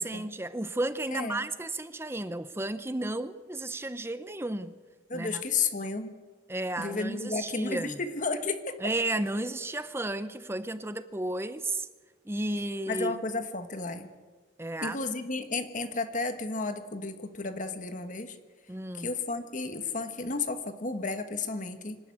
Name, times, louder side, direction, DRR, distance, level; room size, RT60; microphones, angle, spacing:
voice 1, 0.0-4.7 5.1-5.4 6.5-8.0 8.8-11.9 12.3-13.2 14.6-15.0 18.7-19.1, right 2 dB, 15° right, 0.7 m, -33 dB
voice 2, 5.1-6.1 6.8-8.7 12.9-14.1 14.8-18.4 19.0-22.0, left 3 dB, 45° left, 1.3 m, -32 dB
25.5 x 12.5 x 9.5 m
head